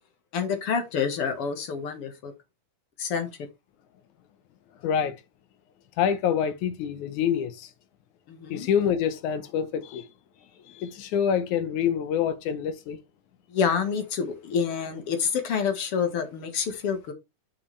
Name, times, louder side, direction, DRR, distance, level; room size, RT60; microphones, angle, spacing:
voice 1, 0.3-2.3 3.0-3.3 8.3-8.7 13.5-17.1, left 6 dB, 55° left, 2.1 m, -28 dB
voice 2, 4.8-5.2 6.0-7.7 8.5-10.1 10.6-13.0, left 8 dB, 75° left, 2.3 m, -26 dB
8.5 x 5.9 x 3.2 m
omnidirectional pair, 3.6 m